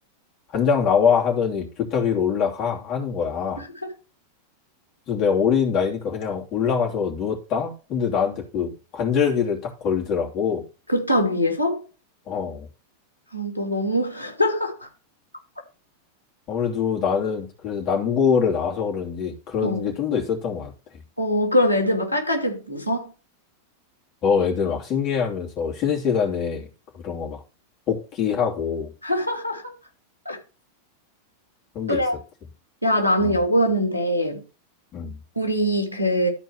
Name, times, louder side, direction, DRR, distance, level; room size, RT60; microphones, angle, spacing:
voice 1, 0.5-3.6 5.1-10.6 12.3-12.7 16.5-20.7 24.2-26.7 26.9-27.4 27.9-28.9 31.7-32.0 33.2-33.4 34.9-35.2, left 6 dB, 35° left, 2.9 m, -24 dB
voice 2, 10.9-11.8 13.3-14.9 19.6-19.8 21.2-23.1 29.0-29.7 30.2-30.4 31.9-32.2 32.8-34.4 35.4-36.3, equal, 90° right, 2.7 m, -23 dB
13.0 x 4.5 x 4.6 m
figure-of-eight pair, 90°, 0 cm